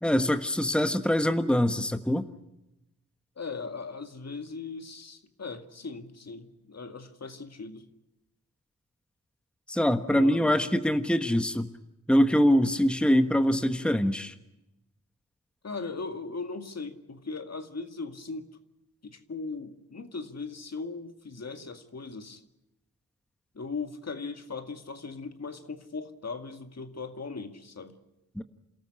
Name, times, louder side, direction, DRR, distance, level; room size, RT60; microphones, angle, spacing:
voice 1, 0.0-2.3 9.7-11.7 12.1-14.3 28.4-28.5, equal, 5° left, 8 dB, 1.4 m, -24 dB
voice 2, 3.4-7.8 10.1-10.7 15.6-18.5 19.0-22.4 23.5-28.0, left 4 dB, 55° left, 7 dB, 2.1 m, -38 dB
28.5 x 13.5 x 9.9 m, 0.93 s
cardioid pair, 45°, 32 cm